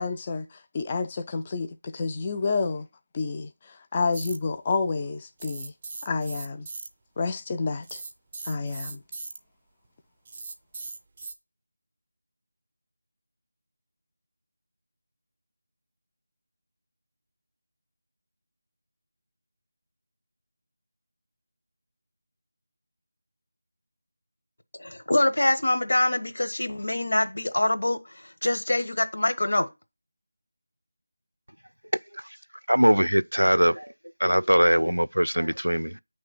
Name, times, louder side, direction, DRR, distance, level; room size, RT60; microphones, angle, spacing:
voice 1, 0.0-2.9 3.1-5.7 6.0-6.7 7.2-8.0 8.5-9.0, left 4 dB, 20° left, 0.4 m, -29 dB
sound 1, 4.1-4.4 5.4-6.9 7.8-9.4 10.3-11.3, right 3 dB, 20° right, 0.6 m, -39 dB
voice 2, 24.8-29.7, left 1 dB, 60° left, 1.1 m, -25 dB
voice 3, 32.7-33.9 34.2-36.0, equal, 85° right, 0.4 m, -21 dB
8.9 x 3.2 x 5.8 m
figure-of-eight pair, 165°, 0 cm